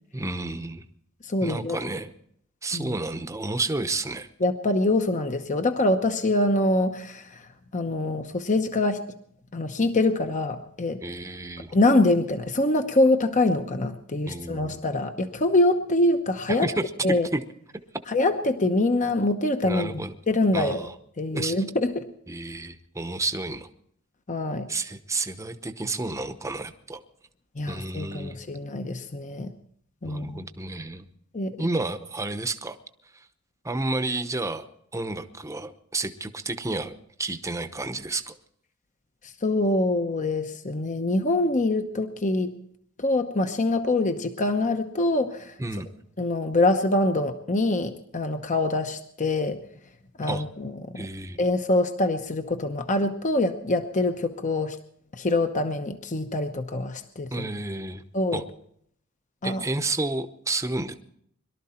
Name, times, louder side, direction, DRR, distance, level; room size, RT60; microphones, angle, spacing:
voice 1, 0.1-0.8 1.4-2.1 2.6-4.3 11.0-11.7 14.3-14.8 16.5-16.8 17.3-17.4 19.6-20.1 20.5-20.9 21.3-21.5 22.3-23.7 24.7-27.0 27.7-28.4 30.0-31.0 31.6-32.8 33.1-33.2 33.6-34.7 34.9-38.3 45.6-45.9 50.3-50.4 50.9-51.4 57.3-58.0 58.3-58.4 59.4-60.9, right 2 dB, 15° right, 9 dB, 0.9 m, -31 dB
voice 2, 1.2-1.8 2.7-3.0 4.4-7.4 7.7-9.0 9.5-11.0 11.7-16.7 17.0-17.3 18.1-20.9 21.2-22.1 24.3-24.7 27.6-29.5 30.0-30.4 31.3-31.7 39.4-42.5 43.0-45.5 46.2-49.6 50.2-51.1 51.4-54.8 55.2-57.5 58.1-58.4 59.4-59.6, left 2 dB, 35° left, 8 dB, 0.9 m, -24 dB
22.5 x 12.5 x 4.4 m, 0.67 s
head